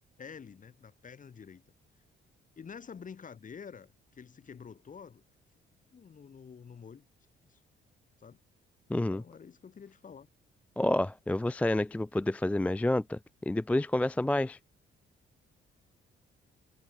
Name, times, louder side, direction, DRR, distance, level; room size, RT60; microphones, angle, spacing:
voice 1, 0.2-1.6 2.6-5.2 5.9-7.1 7.4-7.6 8.2-8.4 9.1-10.3, left 6 dB, 40° left, 2.1 m, -48 dB
voice 2, 8.9-9.2 10.8-13.2 13.5-14.6, left 1 dB, 5° left, 0.3 m, -28 dB
cardioid pair, 90°, 20 cm